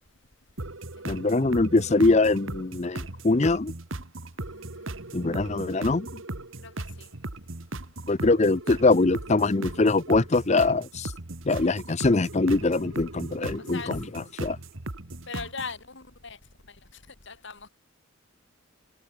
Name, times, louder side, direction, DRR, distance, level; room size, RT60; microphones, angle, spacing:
sound 1, 0.6-15.8, right 2 dB, 65° right, 1.9 m, -38 dB
voice 1, 1.0-3.7 5.1-6.2 8.1-11.1 11.4-14.6, left 3 dB, 30° left, 0.6 m, -23 dB
voice 2, 4.5-4.9 6.6-6.7 7.0-7.1 11.6-11.7 13.7-14.0 15.3-16.4 17.2-17.7, left 5 dB, 55° left, 3.0 m, -39 dB
head